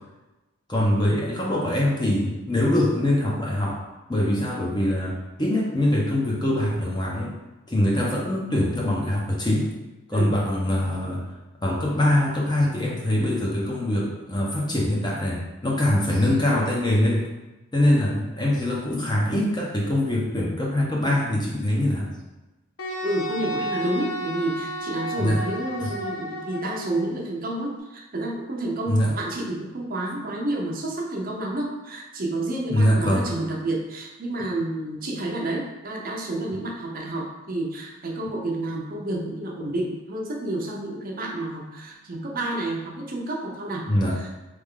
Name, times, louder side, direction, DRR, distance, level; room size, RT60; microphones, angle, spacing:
voice 1, 0.7-3.8 4.1-7.4 7.7-9.7 10.1-11.2 11.6-17.3 17.7-22.1 25.2-25.4 25.8-25.9 28.9-29.1 32.7-33.3 34.4-34.5 43.9-44.2, left 1 dB, 20° left, -3 dB, 0.7 m, -23 dB
Wind instrument woodwind instrument, 22.8-27.1, equal, 75° left, 0.7 m, -32 dB
voice 2, 23.0-43.9, right 1 dB, 40° right, 0 dB, 0.6 m, -30 dB
4.1 x 3.3 x 3.7 m, 1.1 s
head